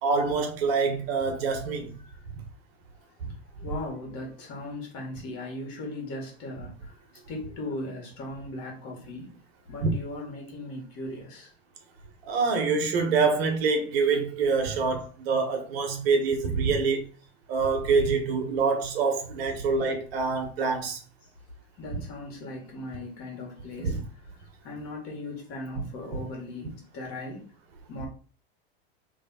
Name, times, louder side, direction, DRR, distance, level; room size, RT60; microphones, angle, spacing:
voice 1, 0.0-1.9 3.2-3.3 9.8-9.9 12.3-17.1 17.5-21.0 23.8-24.0, right 4 dB, 65° right, 1.4 m, -25 dB
voice 2, 3.6-7.0 7.3-9.3 9.7-11.5 19.5-19.7 21.8-24.0 24.6-27.4 27.9-28.1, left 2 dB, 45° left, 2.1 m, -38 dB
3.4 x 3.3 x 4.2 m
hypercardioid pair, 115°, 32 cm